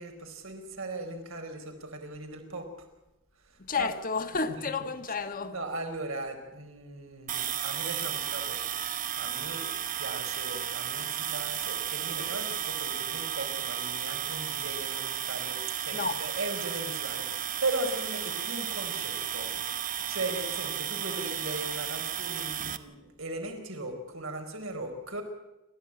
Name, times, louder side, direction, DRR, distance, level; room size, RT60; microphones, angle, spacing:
voice 1, 0.0-2.7 3.8-3.9 5.4-8.6 9.2-9.6 10.0-19.5 19.8-25.2, right 2 dB, 75° right, 4.4 m, -38 dB
voice 2, 3.6-5.5 15.9-16.2, left 4 dB, 40° left, 1.5 m, -31 dB
sound 1, 7.3-22.8, right 10 dB, 40° right, 0.9 m, -33 dB
28.5 x 13.0 x 8.9 m
head